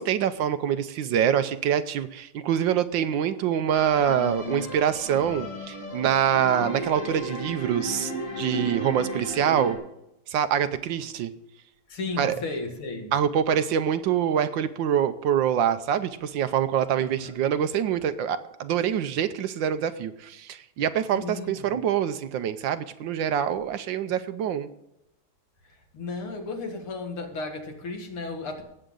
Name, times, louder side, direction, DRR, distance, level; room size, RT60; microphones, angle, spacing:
voice 1, 0.0-9.8 10.3-11.3 12.2-12.4 13.1-24.7, right 9 dB, 70° right, 11 dB, 1.3 m, -25 dB
sound 1, 3.7-9.7, right 1 dB, 55° left, 3.1 m, -34 dB
voice 2, 11.9-13.1 17.0-17.4 21.1-21.8 25.9-28.6, left 3 dB, 85° left, 3 dB, 2.7 m, -34 dB
18.0 x 7.8 x 3.8 m, 0.86 s
omnidirectional pair, 2.3 m